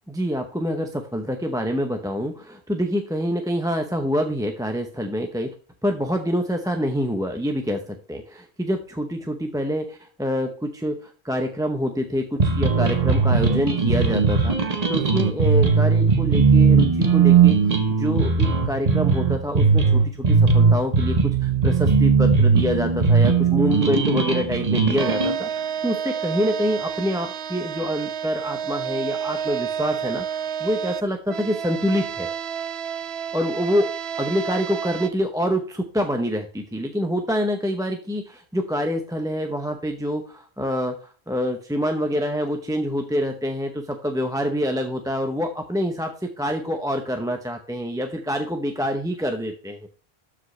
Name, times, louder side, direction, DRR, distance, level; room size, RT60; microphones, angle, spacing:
voice 1, 0.1-5.5 5.8-14.6 14.9-32.3 33.3-33.9 34.2-49.9, equal, 5° right, 4 dB, 0.6 m, -26 dB
sound 1, 12.4-25.3, right 5 dB, 40° right, 1.1 m, -18 dB
sound 2, 25.0-35.1, right 8 dB, 75° right, 0.9 m, -30 dB
12.5 x 5.0 x 3.2 m, 0.40 s
omnidirectional pair, 1.1 m